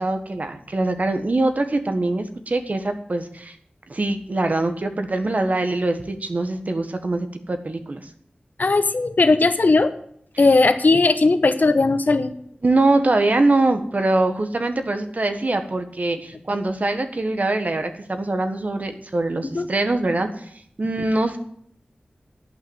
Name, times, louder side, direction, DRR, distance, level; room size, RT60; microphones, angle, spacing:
voice 1, 0.0-3.6 3.9-8.0 12.6-20.5 20.8-21.4, right 2 dB, 50° right, 7 dB, 1.5 m, -23 dB
voice 2, 8.6-9.9 10.4-12.3 19.5-19.6, left 3 dB, 60° left, 10 dB, 1.0 m, -17 dB
11.0 x 5.8 x 9.0 m, 0.66 s
wide cardioid pair, 65°, 3 cm